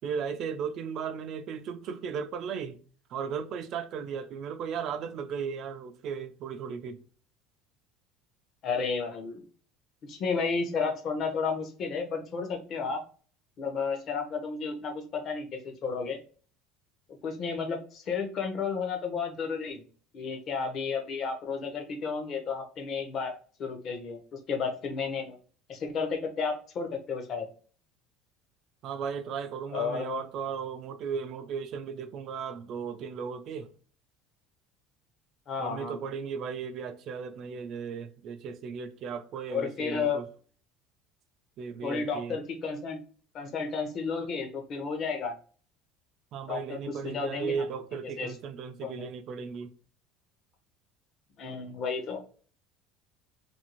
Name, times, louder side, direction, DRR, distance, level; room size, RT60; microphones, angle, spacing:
voice 1, 0.0-2.8 3.1-7.0 28.8-33.7 35.6-40.3 41.6-42.3 46.3-49.7, right 6 dB, 45° right, 0.3 m, -36 dB
voice 2, 8.6-9.4 10.0-13.0 13.6-16.2 17.2-19.8 20.1-25.4 25.7-27.5 29.7-30.2 35.5-36.0 39.5-40.2 41.8-43.0 43.3-45.3 46.5-47.6 48.2-48.3 48.8-49.1 51.4-52.2, left 5 dB, 40° left, 0.7 m, -32 dB
2.7 x 2.6 x 2.9 m
cardioid pair, 145°, 0 cm